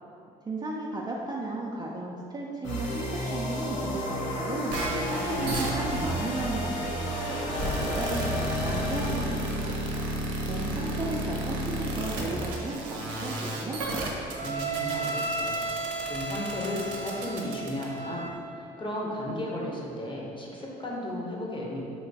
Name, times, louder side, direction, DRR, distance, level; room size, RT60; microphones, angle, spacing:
voice 1, 0.5-4.7 5.1-9.9 10.5-13.8, right 2 dB, 20° right, -3 dB, 0.3 m, -35 dB
sound 1, 2.6-9.7, equal, 75° left, 0.6 m, -33 dB
sound 2, 3.1-8.9, equal, 50° left, 1.1 m, -39 dB
sound 3, 4.7-18.3, right 1 dB, 75° right, 0.5 m, -32 dB
voice 2, 5.4-6.3 14.4-21.8, left 1 dB, 25° left, -3 dB, 0.7 m, -35 dB
3.2 x 2.8 x 2.7 m, 2.6 s
hypercardioid pair, 60°, 20 cm